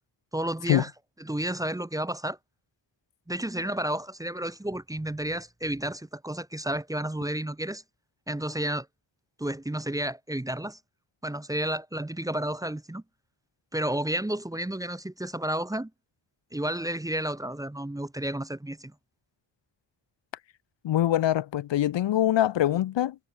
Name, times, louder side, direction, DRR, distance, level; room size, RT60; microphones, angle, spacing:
voice 1, 0.3-0.9 1.2-2.4 3.3-7.8 8.3-8.9 9.4-10.8 11.2-13.0 13.7-15.9 16.5-18.9, right 1 dB, 10° right, 1.0 m, -31 dB
voice 2, 20.8-23.2, left 12 dB, 70° left, 0.7 m, -24 dB
wide cardioid pair, 170°, 46 cm